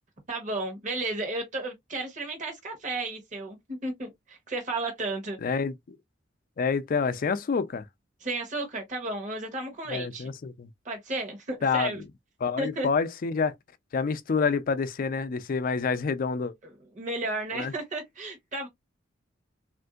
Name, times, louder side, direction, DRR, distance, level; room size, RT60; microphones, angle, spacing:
voice 1, 0.3-5.4 8.2-10.3 10.8-12.0 12.6-12.9 17.0-18.7, right 2 dB, 40° right, 1.0 m, -33 dB
voice 2, 5.4-6.0 6.6-7.9 9.9-10.7 11.6-12.0 12.4-13.5 13.9-16.5 17.5-17.7, left 5 dB, 50° left, 0.4 m, -28 dB
3.5 x 2.5 x 2.3 m
head